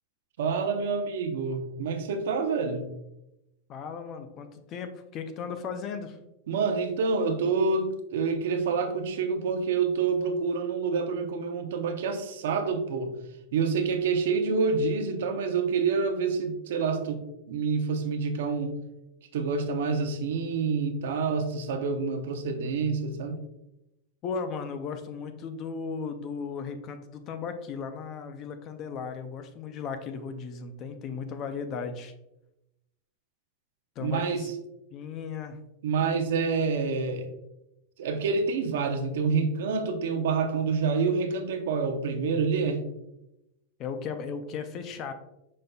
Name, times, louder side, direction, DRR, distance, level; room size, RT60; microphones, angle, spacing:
voice 1, 0.4-2.9 6.5-13.2 13.5-18.8 19.3-23.4 34.0-34.4 35.8-37.3 38.0-42.8, right 5 dB, 70° right, 6 dB, 0.6 m, -27 dB
voice 2, 3.7-6.2 24.2-32.1 34.0-34.5 34.9-35.6 43.8-45.1, left 5 dB, 25° left, 8 dB, 0.4 m, -36 dB
5.3 x 3.9 x 2.2 m, 0.89 s
supercardioid pair, 170°, 0 cm